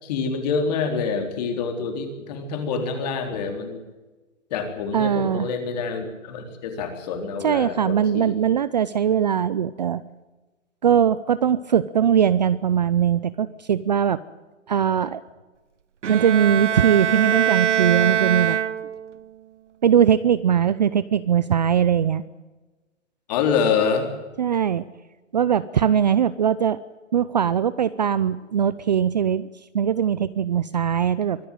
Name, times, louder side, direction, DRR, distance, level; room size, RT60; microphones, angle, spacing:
voice 1, 0.0-3.8 4.5-8.3 23.3-24.1, left 5 dB, 35° left, 6 dB, 3.9 m, -26 dB
voice 2, 4.9-5.5 7.4-10.0 10.8-14.2 14.7-15.2 16.1-18.6 19.8-22.2 24.4-24.8 25.3-26.8 27.1-29.5 29.7-31.4, right 8 dB, 35° right, 16 dB, 0.6 m, -20 dB
Bowed string instrument, 16.0-19.2, right 9 dB, 70° right, 1.3 m, -23 dB
24.0 x 13.0 x 9.0 m, 1.2 s
hypercardioid pair, 155°, 38 cm